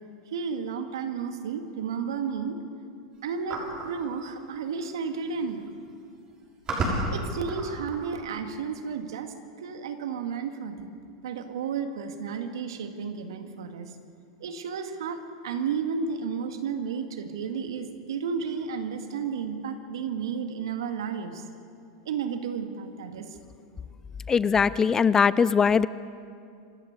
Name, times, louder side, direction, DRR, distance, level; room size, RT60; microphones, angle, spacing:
voice 1, 0.3-2.6 3.2-5.7 7.1-13.9 14.4-21.4 22.1-23.4, right 6 dB, 80° right, 7 dB, 1.9 m, -32 dB
sound 1, 3.5-3.9 5.0-5.1 5.3-5.7 6.3-8.1, right 2 dB, 35° right, 6.3 m, -31 dB
voice 2, 24.3-25.9, left 6 dB, 20° left, 18 dB, 0.5 m, -21 dB
26.5 x 13.0 x 8.2 m, 2.4 s
hypercardioid pair, 110°, 2 cm